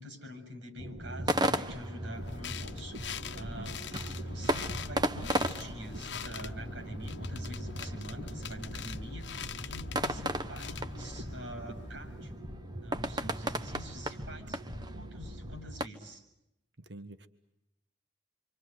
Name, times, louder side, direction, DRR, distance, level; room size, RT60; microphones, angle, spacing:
voice 1, 0.0-3.8 4.2-12.4 12.8-14.6 14.9-16.2, right 1 dB, 80° right, 6 dB, 7.2 m, -46 dB
sound 1, 0.8-15.6, equal, 40° right, 2.2 m, -44 dB
sound 2, 1.0-15.9, right 1 dB, 20° right, 1.1 m, -37 dB
sound 3, 2.2-12.4, left 5 dB, 70° left, 1.1 m, -43 dB
voice 2, 3.3-3.7 13.2-13.3 16.8-17.3, right 2 dB, 65° right, 10 dB, 1.5 m, -46 dB
28.5 x 25.0 x 7.9 m, 0.85 s
head